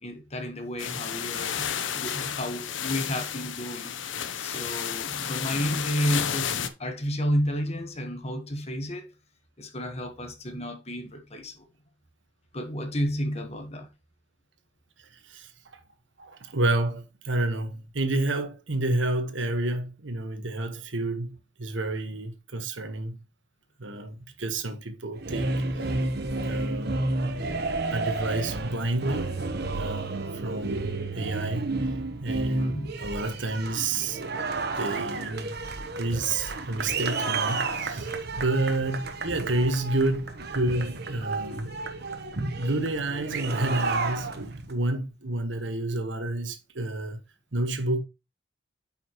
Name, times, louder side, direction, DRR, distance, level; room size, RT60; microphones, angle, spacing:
voice 1, 0.0-4.0 4.4-9.1 9.6-11.6 12.5-13.9 32.6-32.9, equal, 35° left, 1.4 m, -31 dB
sound 1, 0.8-6.7, left 8 dB, 75° left, 0.8 m, -32 dB
voice 2, 15.0-15.8 16.2-23.2 23.8-25.5 25.8-26.0 26.5-27.4 27.9-29.3 29.8-31.7 32.2-34.2 34.8-35.5 36.0-41.7 42.6-47.2 47.5-48.0, right 2 dB, 75° right, 1.4 m, -30 dB
sound 2, 25.1-44.7, right 3 dB, 55° right, 1.1 m, -31 dB
8.7 x 5.8 x 3.1 m
head